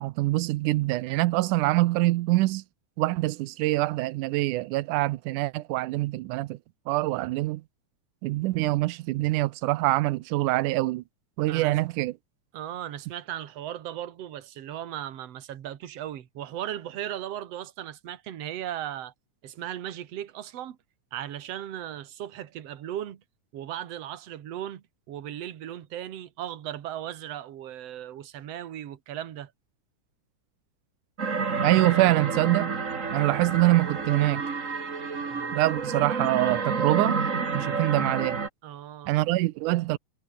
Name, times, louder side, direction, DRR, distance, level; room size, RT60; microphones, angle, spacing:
voice 1, 0.0-2.6 3.0-6.6 6.9-7.6 8.2-11.0 11.4-12.1 31.6-32.7 33.1-34.4 35.5-37.2 37.5-38.4 39.1-40.0, right 18 dB, 85° right, 2.2 m, -24 dB
voice 2, 11.5-11.8 12.5-19.1 19.4-20.8 21.1-23.2 23.5-29.5 35.3-35.6 38.6-39.1, right 11 dB, 60° right, 2.5 m, -37 dB
sound 1, 31.2-38.5, right 5 dB, 30° right, 2.0 m, -29 dB
omnidirectional pair, 3.5 m